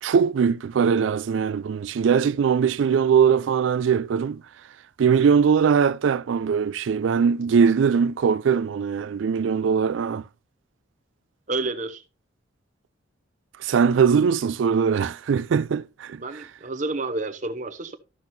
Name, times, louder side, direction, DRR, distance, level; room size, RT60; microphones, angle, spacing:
voice 1, 0.0-4.4 5.0-10.2 13.6-16.2, right 6 dB, 75° right, 0.3 m, -21 dB
voice 2, 11.5-12.0 16.2-17.9, right 3 dB, 40° right, 0.8 m, -29 dB
13.5 x 6.1 x 2.7 m
head